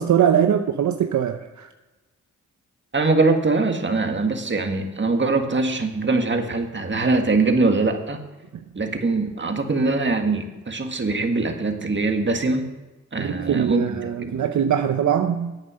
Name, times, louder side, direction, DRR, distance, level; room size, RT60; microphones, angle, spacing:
voice 1, 0.0-1.7 8.5-8.6 13.2-15.6, right 9 dB, 75° right, 0.7 m, -22 dB
voice 2, 2.9-8.2 8.8-12.7 13.1-14.4, right 3 dB, 40° right, 1.8 m, -22 dB
11.0 x 8.8 x 6.4 m
cardioid pair, 60°, 30 cm